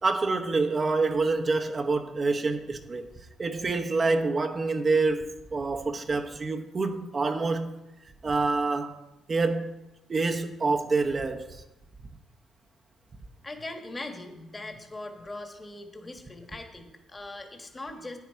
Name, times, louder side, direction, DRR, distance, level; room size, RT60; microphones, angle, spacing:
voice 1, 0.0-3.1 3.4-7.8 8.2-9.0 9.3-9.7 10.1-11.6, right 3 dB, 35° right, 0.8 m, -27 dB
voice 2, 13.4-18.2, left 2 dB, 25° left, 1.6 m, -40 dB
10.0 x 9.4 x 4.6 m
cardioid pair, 90°, 0 cm